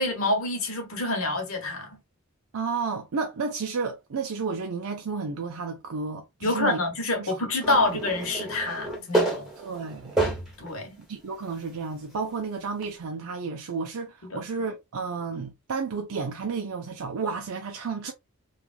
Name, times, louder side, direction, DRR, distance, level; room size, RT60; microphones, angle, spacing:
voice 1, 0.0-2.0 6.4-9.5 10.6-11.0 14.2-14.5, left 2 dB, 75° left, 1.1 m, -27 dB
voice 2, 2.5-6.8 7.2-7.3 7.7-8.0 9.6-10.3 11.1-18.1, right 4 dB, 85° right, 0.5 m, -32 dB
sound 1, 7.6-10.7 11.3-11.4 12.8-12.9, right 2 dB, ahead, 0.9 m, -29 dB
3.1 x 2.4 x 2.4 m
head